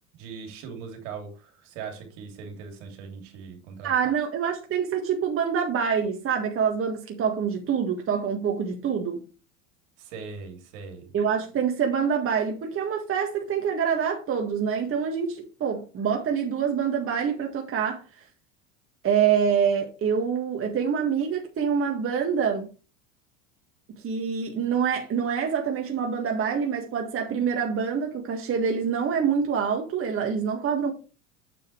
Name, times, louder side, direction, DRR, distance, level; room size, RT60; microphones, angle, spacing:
voice 1, 0.2-4.1 10.0-11.1, right 5 dB, 65° right, 2.8 m, -40 dB
voice 2, 3.8-9.2 11.1-18.0 19.0-22.7 24.0-30.9, right 7 dB, 35° right, 1.8 m, -26 dB
9.0 x 7.5 x 3.2 m
hypercardioid pair, 85°, 38 cm